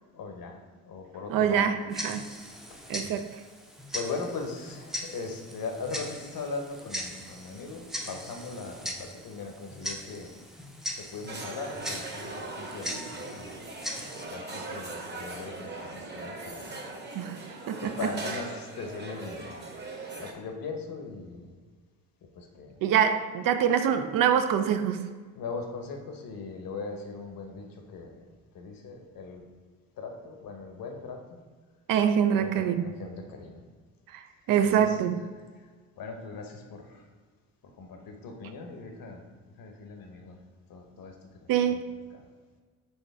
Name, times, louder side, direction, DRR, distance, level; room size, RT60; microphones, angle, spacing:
voice 1, 0.1-0.6 0.8-1.7 2.7-3.1 3.9-10.3 11.0-13.7 14.3-16.7 17.8-19.6 19.9-21.5 22.4-22.7 25.3-28.2 28.5-29.4 30.0-31.4 32.4-33.6 34.6-35.0 35.3-35.4 36.0-37.0 37.8-39.2 39.6-40.4 40.7-41.1 41.7-41.8 42.1-42.3, left 4 dB, 50° left, 4 dB, 0.9 m, -39 dB
voice 2, 1.3-2.2 2.9-3.3 17.2-18.1 22.8-25.2 31.9-32.9 34.1-34.2 34.5-35.2 41.5-41.8, right 8 dB, 50° right, 8 dB, 0.4 m, -25 dB
Tick-tock, 1.9-14.3, equal, ahead, 0.6 m, -40 dB
sound 1, 11.3-20.3, right 2 dB, 25° right, 1.0 m, -40 dB
4.5 x 3.1 x 3.5 m, 1.5 s
hypercardioid pair, 50°, 44 cm